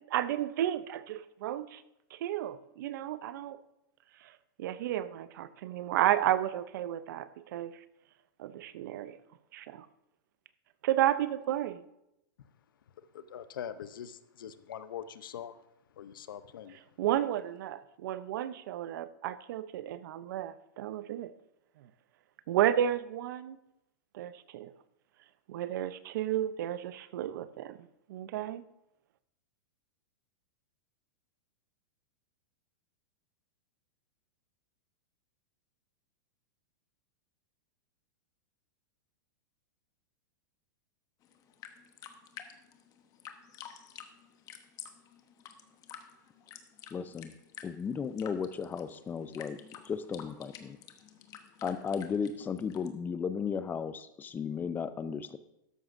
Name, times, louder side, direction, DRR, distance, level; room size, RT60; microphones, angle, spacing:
voice 1, 0.0-1.8 2.1-3.6 4.6-7.8 8.4-9.2 9.5-9.9 10.8-11.8 17.0-21.3 22.5-23.6 24.1-24.7 25.5-28.6, right 12 dB, 65° right, 14 dB, 0.6 m, -32 dB
voice 2, 13.1-15.6 16.0-16.8, left 9 dB, 80° left, 13 dB, 0.7 m, -43 dB
sound 1, 41.2-52.9, left 9 dB, 30° left, 1.0 m, -50 dB
voice 3, 46.9-47.3 47.6-49.6 49.9-50.8 51.6-55.4, left 6 dB, 15° left, 13 dB, 0.5 m, -35 dB
13.0 x 11.0 x 2.6 m, 0.87 s
hypercardioid pair, 130°, 11 cm